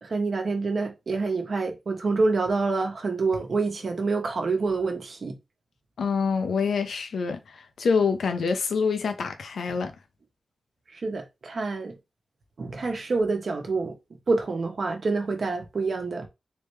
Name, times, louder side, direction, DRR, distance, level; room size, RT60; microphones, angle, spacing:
voice 1, 0.0-5.3 10.9-11.9 12.6-14.0 14.3-16.3, right 3 dB, 55° right, 1.0 m, -27 dB
voice 2, 6.0-9.9, left 5 dB, 90° left, 0.7 m, -26 dB
3.6 x 3.4 x 3.2 m
wide cardioid pair, 115°, 0 cm